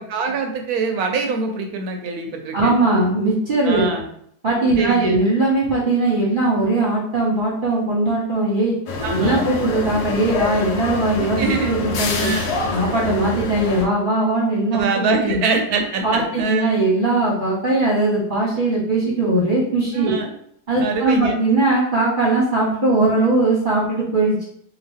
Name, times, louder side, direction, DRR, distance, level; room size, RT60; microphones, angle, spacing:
voice 1, 0.0-2.7 3.6-4.1 4.8-5.2 9.0-9.5 11.2-11.7 12.2-12.5 14.7-16.7 19.9-20.3 20.8-21.4, right 4 dB, 70° right, 4 dB, 1.0 m, -24 dB
voice 2, 2.5-3.9 4.4-8.7 9.1-12.3 12.7-14.8 15.2-15.4 16.0-20.2 20.7-24.4, right 2 dB, 40° right, -6 dB, 0.9 m, -19 dB
sound 1, 8.9-13.9, left 3 dB, 70° left, 1.1 m, -26 dB
2.8 x 2.5 x 3.4 m, 0.68 s
omnidirectional pair, 1.8 m